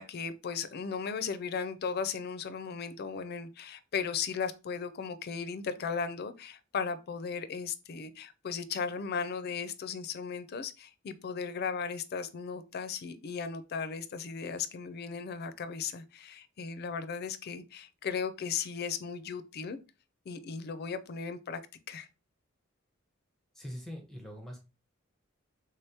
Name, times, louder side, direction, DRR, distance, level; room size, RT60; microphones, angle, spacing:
voice 1, 0.0-19.8 20.3-21.6 21.9-22.1, left 6 dB, 50° left, 0.4 m, -36 dB
voice 2, 23.5-24.6, equal, ahead, 0.6 m, -42 dB
3.4 x 3.4 x 2.8 m
head